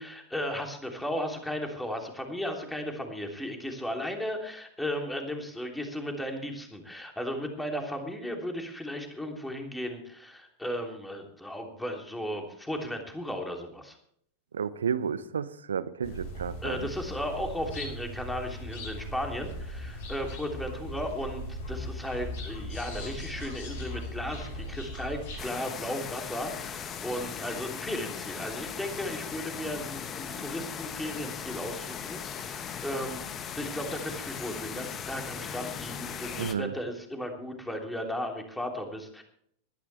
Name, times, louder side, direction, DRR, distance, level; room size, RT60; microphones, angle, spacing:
voice 1, 0.0-14.0 16.6-33.2 33.6-39.2, equal, 5° left, 3.2 m, -35 dB
voice 2, 14.5-16.9 36.4-36.7, right 7 dB, 70° right, 0.9 m, -32 dB
sound 1, 16.0-25.4, equal, 55° left, 6.0 m, -38 dB
sound 2, 25.4-36.5, left 7 dB, 25° left, 1.3 m, -38 dB
20.0 x 13.0 x 3.4 m
figure-of-eight pair, 90°, 0 cm